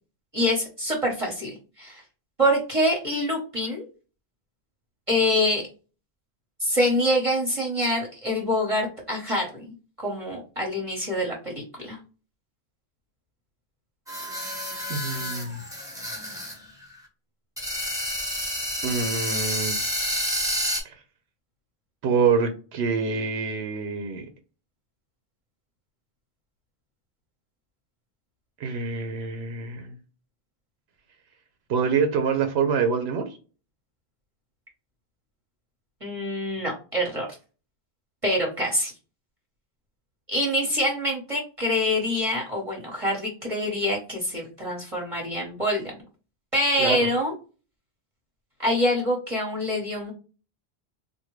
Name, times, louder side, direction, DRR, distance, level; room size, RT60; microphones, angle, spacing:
voice 1, 0.3-2.0 2.4-3.8 5.1-5.7 6.6-12.0 36.0-37.3 38.2-38.9 40.3-45.9 46.5-47.3 48.6-50.1, left 1 dB, 35° right, -1 dB, 0.9 m, -25 dB
sound 1, 14.1-16.6 16.8-16.9 17.6-20.8, equal, 5° right, 0.9 m, -29 dB
voice 2, 14.9-15.6 18.8-19.7 20.8-21.0 22.0-24.3 28.6-30.0 31.7-33.4 46.8-47.1, right 5 dB, 90° right, 7 dB, 0.9 m, -26 dB
3.5 x 2.2 x 3.0 m, 0.34 s
omnidirectional pair, 1.0 m